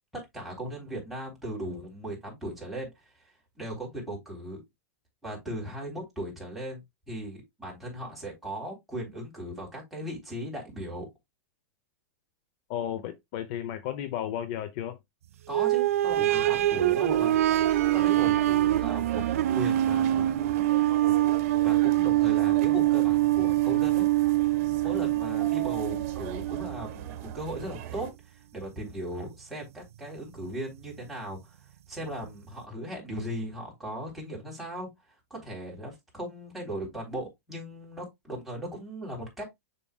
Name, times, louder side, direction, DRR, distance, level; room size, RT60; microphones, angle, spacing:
voice 1, 0.1-3.3 3.6-4.6 5.2-11.1 15.5-17.4 17.7-19.2 19.5-20.4 21.4-24.1 24.8-31.6 31.9-34.9 35.3-39.4, right 1 dB, ahead, 3.7 m, -38 dB
voice 2, 12.7-15.0, left 10 dB, 50° left, 0.8 m, -33 dB
sound 1, 15.5-27.1 27.6-27.7 28.7-28.8, right 15 dB, 80° right, 0.5 m, -24 dB
sound 2, 16.1-28.1, right 11 dB, 45° right, 1.6 m, -40 dB
7.1 x 5.7 x 2.3 m
supercardioid pair, 140°, 8 cm